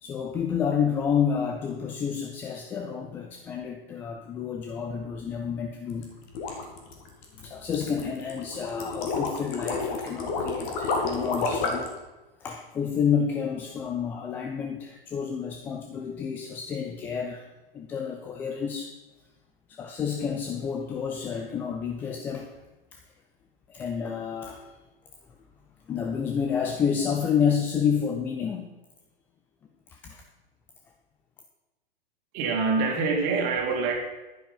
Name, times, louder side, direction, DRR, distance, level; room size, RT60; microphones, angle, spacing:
voice 1, 0.0-6.1 7.3-11.9 12.4-17.5 17.7-18.9 19.7-22.5 22.9-23.0 23.7-24.7 25.9-28.7 29.9-30.2, left 7 dB, 5° left, 3 dB, 0.3 m, -29 dB
sound 1, 5.9-11.9, left 3 dB, 30° left, 2.2 m, -30 dB
voice 2, 32.3-34.0, right 4 dB, 30° right, 2 dB, 2.6 m, -25 dB
11.0 x 10.0 x 5.4 m, 1.1 s
figure-of-eight pair, 110°, 29 cm